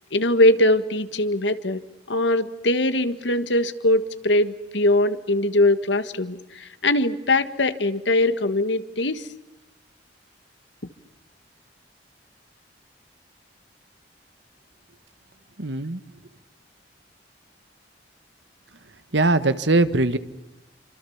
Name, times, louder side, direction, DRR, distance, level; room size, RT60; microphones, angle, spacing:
voice 1, 0.1-1.8 2.1-9.3, left 1 dB, 75° left, 11 dB, 1.6 m, -21 dB
voice 2, 15.6-16.0 19.1-20.2, right 2 dB, 70° right, 12 dB, 1.4 m, -20 dB
27.0 x 25.5 x 7.2 m, 0.99 s
head